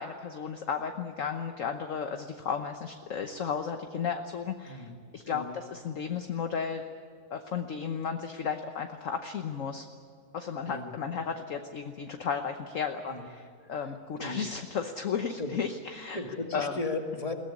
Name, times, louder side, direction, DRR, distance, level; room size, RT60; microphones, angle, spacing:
voice 1, 0.0-6.8 7.3-9.9 10.3-16.2 16.5-16.8, left 6 dB, 50° left, 6 dB, 1.1 m, -34 dB
voice 2, 4.6-5.0 5.3-5.6 10.7-11.0 13.0-13.3 13.6-13.7 14.2-14.4 15.4-15.6 16.1-17.3, left 3 dB, 15° left, 3 dB, 2.0 m, -36 dB
21.5 x 17.5 x 10.0 m, 2.2 s
omnidirectional pair, 2.3 m